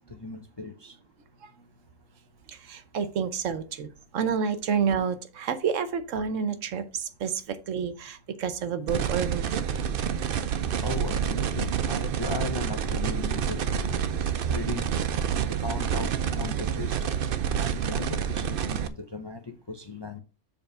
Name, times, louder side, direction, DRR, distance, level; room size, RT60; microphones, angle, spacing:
voice 1, 0.1-1.0 10.8-14.9 15.6-17.1 17.5-19.4 19.7-20.2, left 3 dB, 40° left, 0.3 m, -37 dB
voice 2, 2.7-3.9 4.1-9.6, right 6 dB, 80° right, 1.2 m, -29 dB
sound 1, 8.9-18.9, right 8 dB, 55° right, 0.6 m, -28 dB
7.2 x 3.6 x 5.4 m
omnidirectional pair, 1.3 m